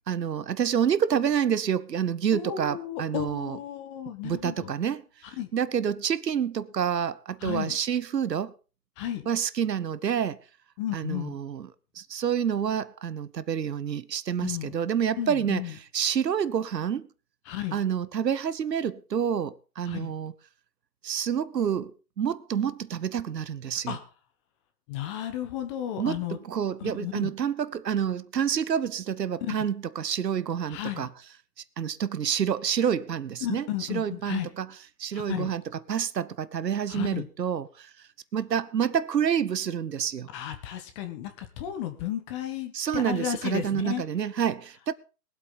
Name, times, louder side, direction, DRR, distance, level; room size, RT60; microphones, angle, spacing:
voice 1, 0.1-3.6 4.2-5.1 5.5-8.5 9.3-10.4 10.9-11.7 11.9-15.6 15.9-17.1 17.7-20.3 21.0-24.0 26.0-31.1 31.8-34.7 35.0-35.6 35.9-37.9 38.3-40.3 42.7-44.9, right 8 dB, 75° right, 1.0 m, -28 dB
voice 2, 2.3-4.7 5.4-5.5 7.4-7.8 9.0-9.3 10.8-11.4 14.4-14.7 15.2-15.8 17.4-17.8 19.8-20.1 23.9-24.0 24.9-26.4 26.8-27.3 29.4-29.5 30.7-31.1 33.4-34.5 35.1-35.6 36.9-37.3 40.3-44.0, left 11 dB, 15° left, 1.3 m, -33 dB
22.0 x 8.2 x 4.0 m
hypercardioid pair, 150°, 50 cm